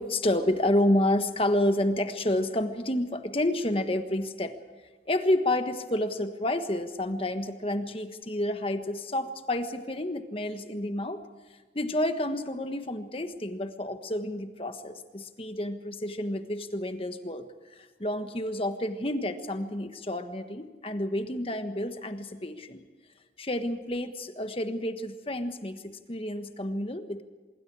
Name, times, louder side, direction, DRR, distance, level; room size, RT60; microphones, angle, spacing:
voice 1, 0.0-4.6 5.1-11.2 11.7-17.4 17.7-22.8 23.4-27.2, left 1 dB, 30° left, 8 dB, 1.4 m, -29 dB
25.5 x 23.0 x 4.8 m, 1.4 s
head